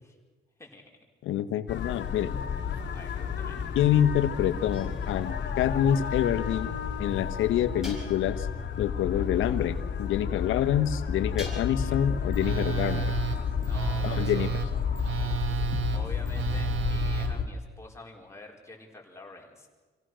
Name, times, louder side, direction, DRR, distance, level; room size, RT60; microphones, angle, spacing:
voice 1, 0.6-1.0 2.9-3.6 10.5-12.0 13.6-14.8 15.9-19.7, left 2 dB, 15° left, 0 dB, 4.7 m, -47 dB
voice 2, 1.2-2.3 3.7-6.7 7.0-8.5 8.8-13.1 14.0-14.5 15.7-15.8, left 10 dB, 85° left, 11 dB, 1.2 m, -27 dB
sound 1, 1.7-17.5, left 7 dB, 60° left, 2.6 m, -31 dB
sound 2, 4.7-5.4 7.8-8.6 11.4-12.0, left 1 dB, ahead, 7.3 m, -45 dB
Telephone, 12.3-17.3, right 12 dB, 90° right, 2.0 m, -32 dB
27.0 x 16.5 x 6.3 m, 1.3 s
cardioid pair, 90°, 20 cm